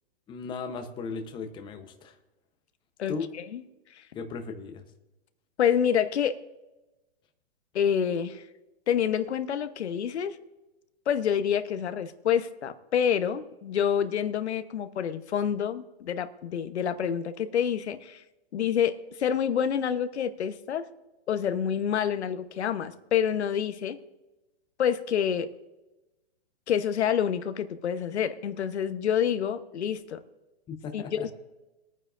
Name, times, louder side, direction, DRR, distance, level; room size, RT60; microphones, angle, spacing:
voice 1, 0.3-2.1 3.1-3.3 4.1-4.8 30.7-31.3, left 5 dB, 15° left, 6 dB, 0.8 m, -36 dB
voice 2, 3.0-3.6 3.9-4.0 5.6-6.4 7.7-8.4 8.9-10.4 11.1-18.2 18.5-20.8 21.3-24.0 24.8-25.5 26.7-30.2 30.9-31.3, left 8 dB, 80° left, 10 dB, 1.0 m, -27 dB
22.0 x 9.3 x 2.5 m, 1.0 s
hypercardioid pair, 140°, 33 cm